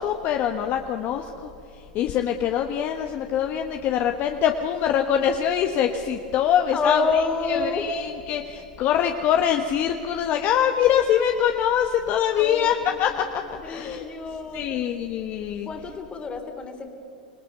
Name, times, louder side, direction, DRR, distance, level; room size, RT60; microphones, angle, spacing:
voice 1, 0.0-14.0 14.5-15.7, left 9 dB, 45° left, 4 dB, 1.3 m, -24 dB
voice 2, 6.7-7.9 12.4-12.8 13.6-14.8 15.6-16.9, left 4 dB, 20° left, 4 dB, 3.0 m, -27 dB
27.0 x 17.0 x 6.8 m, 2.8 s
hypercardioid pair, 115°, 5 cm